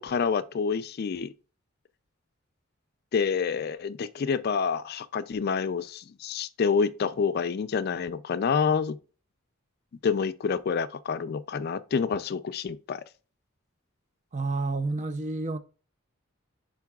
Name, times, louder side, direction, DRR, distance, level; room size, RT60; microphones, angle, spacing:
voice 1, 0.0-1.3 3.1-9.0 10.0-13.0, left 6 dB, 50° left, 0.4 m, -28 dB
voice 2, 14.3-15.6, right 3 dB, 35° right, 0.5 m, -29 dB
10.5 x 4.5 x 2.3 m
head